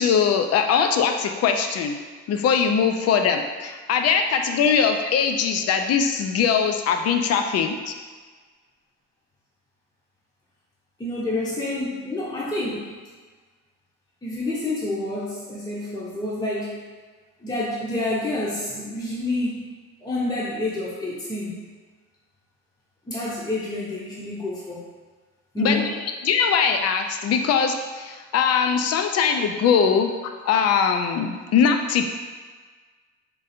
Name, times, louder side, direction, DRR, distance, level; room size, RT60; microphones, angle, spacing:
voice 1, 0.0-2.0 2.3-8.0 25.6-25.8 26.2-30.1 30.4-32.1, left 6 dB, 55° left, 6 dB, 0.5 m, -21 dB
voice 2, 11.0-13.0 14.2-16.8 17.4-21.6 23.1-24.8 25.5-25.9 29.1-29.2, left 2 dB, 15° left, -7 dB, 0.8 m, -28 dB
3.8 x 2.5 x 4.2 m, 1.4 s
cardioid pair, 120°, 29 cm